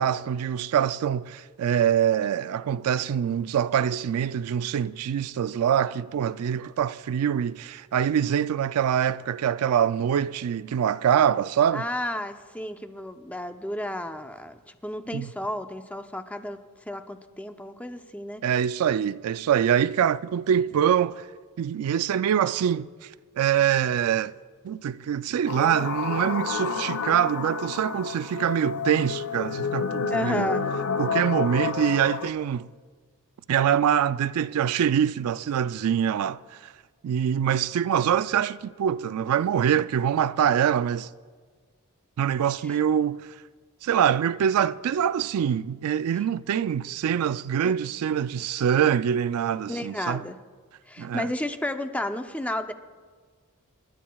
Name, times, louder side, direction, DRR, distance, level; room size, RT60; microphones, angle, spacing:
voice 1, 0.0-11.9 15.1-15.3 18.4-21.3 21.6-23.1 23.4-24.3 24.6-30.5 31.0-32.7 33.5-36.7 37.0-41.1 42.2-43.3 43.8-50.2 51.0-51.3, right 9 dB, 75° right, 0.3 m, -24 dB
voice 2, 11.7-18.4 30.1-30.7 42.7-42.8 47.6-47.7 49.7-50.4 50.9-52.7, left 1 dB, 5° left, 0.5 m, -32 dB
sound 1, 25.5-32.3, left 5 dB, 70° left, 0.6 m, -30 dB
28.0 x 12.0 x 2.3 m
head